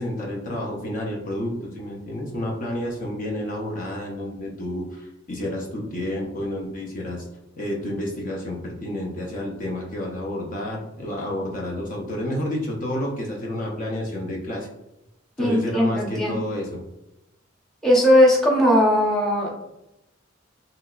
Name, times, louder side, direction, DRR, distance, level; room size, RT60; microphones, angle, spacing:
voice 1, 0.0-7.3 7.6-14.7 15.4-16.8, left 1 dB, 45° left, -1 dB, 0.5 m, -30 dB
voice 2, 15.4-16.4 17.8-19.6, equal, ahead, -5 dB, 0.7 m, -18 dB
3.2 x 2.8 x 2.3 m, 0.90 s
head